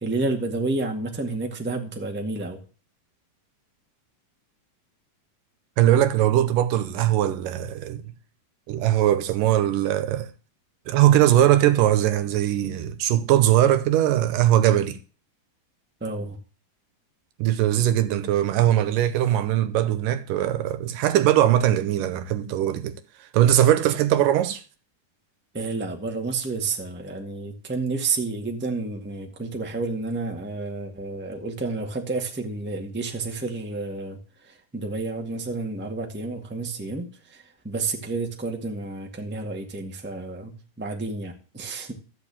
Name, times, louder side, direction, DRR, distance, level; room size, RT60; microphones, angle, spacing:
voice 1, 0.0-2.6 16.0-16.4 25.5-34.2 34.4-41.9, right 3 dB, 5° right, 1.0 m, -30 dB
voice 2, 5.8-8.0 8.7-10.3 10.9-15.0 17.4-22.9 23.2-24.6, right 12 dB, 80° right, 2.3 m, -20 dB
13.5 x 5.3 x 8.7 m
omnidirectional pair, 4.0 m